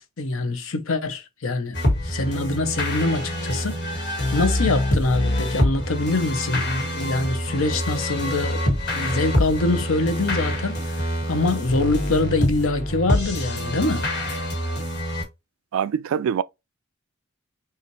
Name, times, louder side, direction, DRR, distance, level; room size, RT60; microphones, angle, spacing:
voice 1, 0.0-4.0 4.3-8.6 8.9-14.0, left 2 dB, 70° left, 0.8 m, -24 dB
sound 1, 1.7-15.2, left 1 dB, 55° left, 1.5 m, -25 dB
voice 2, 15.7-16.4, right 8 dB, 70° right, 0.3 m, -24 dB
5.6 x 2.5 x 3.0 m
head